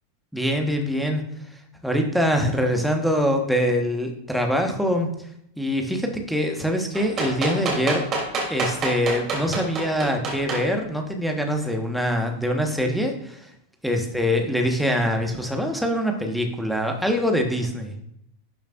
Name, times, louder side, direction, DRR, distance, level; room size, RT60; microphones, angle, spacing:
voice 1, 0.3-1.2 1.8-5.1 5.6-8.0 8.5-13.5 13.8-18.0, equal, ahead, 3 dB, 1.4 m, -24 dB
sound 1, 6.9-10.6 11.6-11.7, right 3 dB, 30° right, 3.2 m, -27 dB
12.0 x 7.1 x 2.6 m, 0.75 s
figure-of-eight pair, 90°, 0 cm